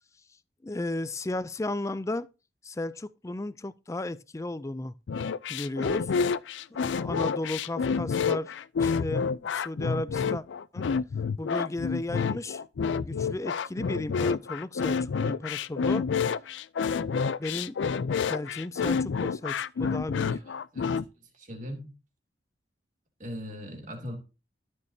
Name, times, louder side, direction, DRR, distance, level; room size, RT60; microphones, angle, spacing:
voice 1, 0.6-2.3 2.6-4.9 5.5-6.1 6.9-8.5 8.8-10.4 10.7-10.9 11.4-12.6 13.0-16.1 17.4-17.7 18.3-20.4, left 2 dB, 15° left, 0.4 m, -34 dB
sound 1, 5.1-21.0, left 5 dB, 80° left, 0.4 m, -28 dB
voice 2, 20.3-21.9 23.2-24.2, equal, 45° right, 2.7 m, -40 dB
13.0 x 6.6 x 2.7 m
head